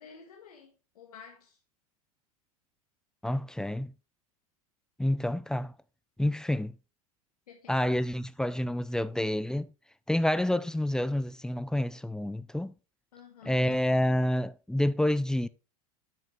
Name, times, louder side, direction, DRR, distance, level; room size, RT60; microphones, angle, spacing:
voice 1, 0.0-1.6 7.5-7.8 13.1-13.8, left 7 dB, 85° left, 1.6 m, -51 dB
voice 2, 3.2-3.9 5.0-5.7 6.2-6.7 7.7-9.7 10.1-12.7 13.4-15.5, left 1 dB, 5° left, 0.4 m, -28 dB
9.0 x 6.0 x 3.8 m
hypercardioid pair, 100°, 19 cm